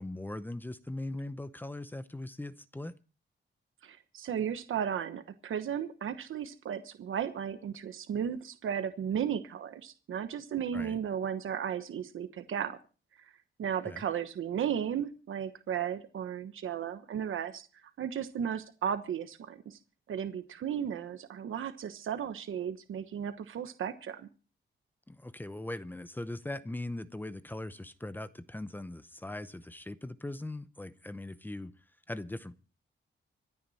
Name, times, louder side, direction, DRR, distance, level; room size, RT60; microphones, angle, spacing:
voice 1, 0.0-2.9 10.7-10.9 13.9-14.0 25.1-31.7 32.1-32.6, left 1 dB, 10° left, 0.7 m, -40 dB
voice 2, 3.8-12.8 13.2-13.3 13.6-19.8 20.1-24.3, right 8 dB, 80° right, 1.2 m, -35 dB
26.0 x 9.5 x 4.2 m
wide cardioid pair, 150°, 20 cm